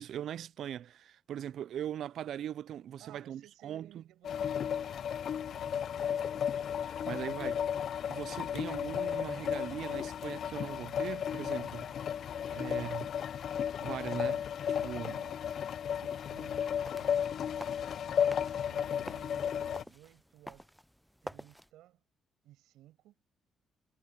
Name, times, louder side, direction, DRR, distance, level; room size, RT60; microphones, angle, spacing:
voice 1, 0.0-4.0 6.8-7.6 8.1-11.9 12.5-13.1 13.8-14.4 14.8-15.2, right 10 dB, 70° right, 0.4 m, -40 dB
voice 2, 3.0-6.4 7.2-7.7 12.6-13.1 15.2-15.5 16.2-17.5 18.0-20.7 21.2-22.0 22.4-23.1, right 14 dB, 90° right, 6.0 m, -58 dB
sound 1, 4.2-19.8, left 8 dB, 65° left, 0.6 m, -34 dB
sound 2, 16.7-21.7, equal, ahead, 0.5 m, -49 dB
cardioid pair, 90°, 0 cm